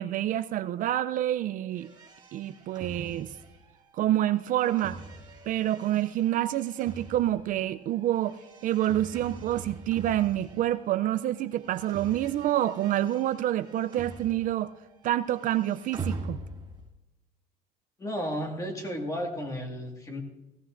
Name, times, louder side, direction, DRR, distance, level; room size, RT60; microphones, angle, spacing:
voice 1, 0.0-1.9 2.3-3.3 3.9-5.0 5.5-8.4 8.6-14.7 15.0-16.4, right 13 dB, 50° right, 12 dB, 0.4 m, -27 dB
sound 1, 1.7-11.0 11.3-14.7 15.0-16.9, right 3 dB, 25° right, 2.1 m, -43 dB
voice 2, 18.0-20.2, equal, 20° left, 2 dB, 1.8 m, -33 dB
16.5 x 15.5 x 2.5 m, 0.98 s
cardioid pair, 140°, 17 cm